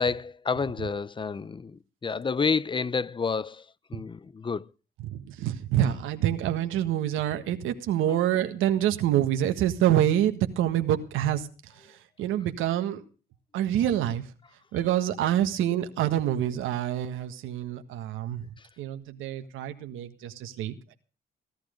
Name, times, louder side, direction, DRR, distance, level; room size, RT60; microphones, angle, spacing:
voice 1, 0.0-3.6 3.9-4.7, left 5 dB, 25° left, 0.7 m, -29 dB
voice 2, 5.0-11.5 12.2-13.0 13.5-14.2 14.7-18.5 18.8-20.9, right 11 dB, 90° right, 1.6 m, -26 dB
16.5 x 12.0 x 5.1 m
cardioid pair, 90°, 20 cm